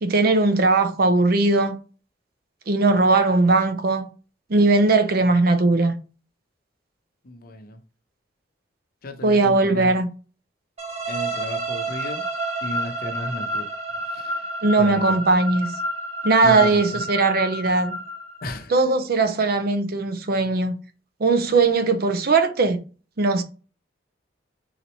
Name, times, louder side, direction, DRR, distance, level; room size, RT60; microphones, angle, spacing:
voice 1, 0.0-1.8 2.7-4.1 4.5-6.0 9.2-10.1 14.6-15.7 16.2-18.0 18.7-20.8 21.2-22.8 23.2-23.4, right 3 dB, 55° right, 0.6 m, -19 dB
voice 2, 7.2-7.8 9.0-9.9 11.1-12.3 12.6-13.6 14.2-14.4 14.8-15.2 16.4-17.0 18.4-18.7, left 1 dB, 55° left, 0.7 m, -34 dB
sound 1, 10.8-18.6, right 1 dB, 35° right, 1.3 m, -30 dB
4.0 x 3.0 x 4.1 m
head